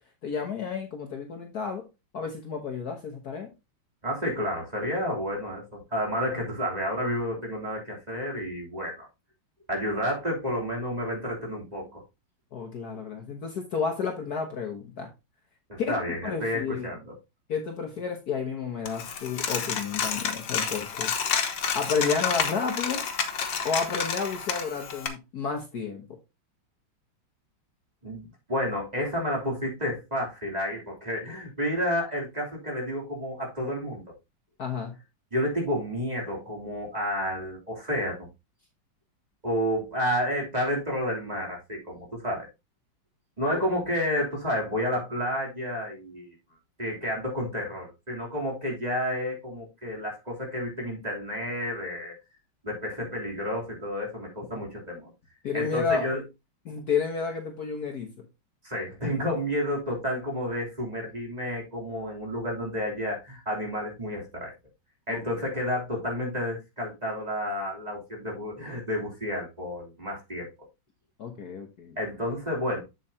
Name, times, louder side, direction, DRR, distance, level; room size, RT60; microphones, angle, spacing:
voice 1, 0.2-1.8 2.1-3.5 12.5-15.1 15.8-16.9 17.5-21.1 21.7-23.0 23.6-26.2 34.6-34.9 43.5-43.6 55.4-56.1 56.6-58.1 65.1-65.2 71.2-72.0, left 5 dB, 55° left, 3 dB, 1.5 m, -31 dB
voice 2, 4.0-9.1 9.7-12.0 15.7-17.1 28.0-34.0 35.3-38.3 39.4-42.5 43.4-46.3 46.8-52.1 52.6-55.1 55.5-56.2 58.6-64.5 65.1-70.5 72.0-72.8, equal, 20° right, -2 dB, 3.2 m, -30 dB
Coin (dropping), 18.9-25.1, left 7 dB, 75° left, 1.8 m, -30 dB
7.8 x 7.7 x 2.8 m, 0.24 s
omnidirectional pair, 2.1 m